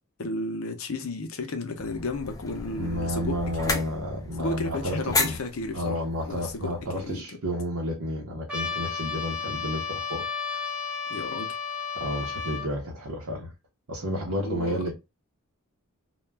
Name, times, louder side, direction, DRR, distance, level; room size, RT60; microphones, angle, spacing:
voice 1, 0.2-3.8 4.4-7.2 11.1-11.5 14.4-14.8, left 2 dB, 65° left, 0.6 m, -33 dB
sound 1, 1.8-7.2, left 3 dB, 15° left, 0.3 m, -34 dB
voice 2, 2.8-5.4 5.7-10.7 12.0-13.5 13.9-15.0, equal, 85° right, 0.7 m, -31 dB
Trumpet, 8.5-12.7, left 6 dB, 5° right, 0.7 m, -32 dB
2.3 x 2.2 x 3.2 m
head